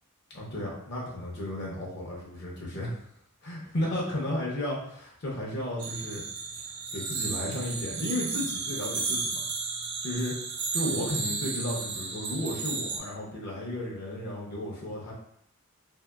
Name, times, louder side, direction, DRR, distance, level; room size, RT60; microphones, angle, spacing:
voice 1, 0.3-3.0 3.4-6.2 6.9-9.4 10.0-10.4 10.7-15.1, left 1 dB, 50° left, -3 dB, 0.6 m, -33 dB
sound 1, 5.8-13.0, right 4 dB, 55° right, 0.4 m, -33 dB
2.7 x 2.7 x 2.3 m, 0.69 s
head